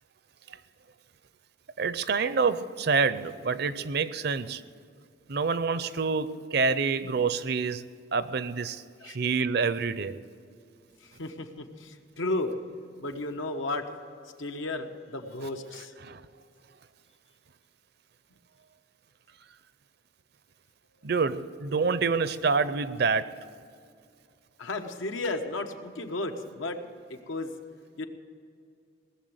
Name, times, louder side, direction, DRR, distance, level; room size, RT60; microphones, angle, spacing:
voice 1, 1.8-4.6 5.3-7.8 8.1-10.2 16.0-16.2 21.0-23.3, right 5 dB, 55° right, 14 dB, 0.6 m, -27 dB
voice 2, 11.0-12.5 13.0-13.8 14.4-15.9 24.6-26.8 27.1-27.5 28.0-28.1, left 2 dB, 85° left, 5 dB, 1.2 m, -33 dB
18.5 x 7.0 x 8.0 m, 2.3 s
head